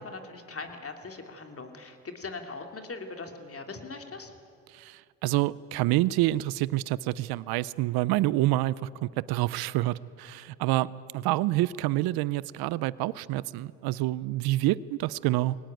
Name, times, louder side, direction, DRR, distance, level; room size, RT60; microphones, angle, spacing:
voice 1, 0.0-4.3, left 3 dB, 40° left, 5 dB, 3.0 m, -40 dB
voice 2, 4.7-15.6, right 17 dB, 85° right, 20 dB, 0.6 m, -27 dB
22.5 x 18.5 x 9.0 m, 2.4 s
supercardioid pair, 65°, 36 cm